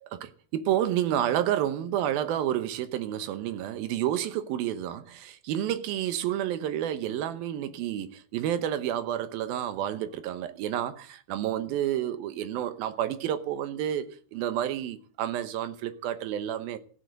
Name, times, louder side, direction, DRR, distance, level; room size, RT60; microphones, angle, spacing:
voice 1, 0.0-16.8, right 11 dB, 70° right, 2.4 m, -30 dB
15.0 x 9.9 x 8.0 m
omnidirectional pair, 5.3 m